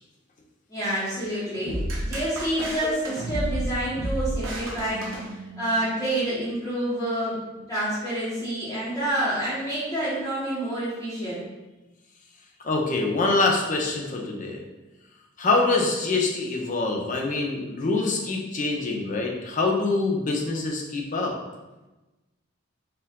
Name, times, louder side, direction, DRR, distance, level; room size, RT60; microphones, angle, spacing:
voice 1, 0.7-5.1 5.6-11.4, right 1 dB, 15° left, -12 dB, 1.0 m, -28 dB
sound 1, 1.7-5.8, right 1 dB, 75° right, 1.0 m, -31 dB
voice 2, 12.6-14.6 15.4-21.3, left 3 dB, 40° left, 0 dB, 0.6 m, -25 dB
4.5 x 2.5 x 3.6 m, 1.1 s
head